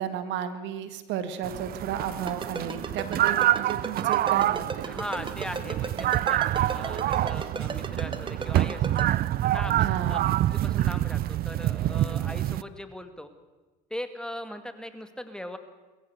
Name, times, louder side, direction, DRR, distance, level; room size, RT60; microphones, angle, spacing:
voice 1, 0.0-4.9 7.2-7.4 9.8-10.3, right 9 dB, 65° right, 11 dB, 1.8 m, -33 dB
sound 1, 1.4-12.6, right 13 dB, 50° right, 0.6 m, -26 dB
Ringtone, 2.3-9.0, right 4 dB, 25° right, 2.1 m, -33 dB
voice 2, 4.9-9.1 9.5-10.2 10.5-13.3 13.9-15.6, left 1 dB, 5° left, 8 dB, 2.1 m, -39 dB
22.0 x 15.0 x 8.0 m, 1.2 s
hypercardioid pair, 80°, 21 cm